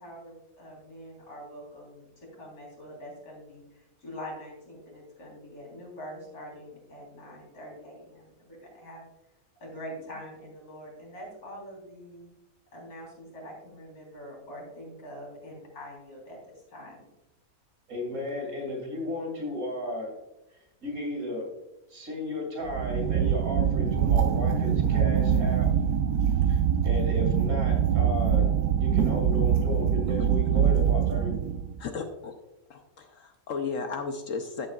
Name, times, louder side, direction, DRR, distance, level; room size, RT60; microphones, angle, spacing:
voice 1, 0.0-9.1 9.6-12.3 12.7-17.0, equal, 85° left, -2 dB, 4.3 m, -44 dB
voice 2, 17.9-20.1 20.8-21.5 21.9-25.7 26.5-26.6 26.8-31.5, left 1 dB, 70° right, 1 dB, 3.1 m, -34 dB
sound 1, 22.6-31.8, right 8 dB, 90° right, 1.2 m, -24 dB
voice 3, 31.8-32.4 32.7-34.7, left 5 dB, 65° left, 5 dB, 1.1 m, -35 dB
13.0 x 8.0 x 2.4 m, 0.93 s
omnidirectional pair, 1.6 m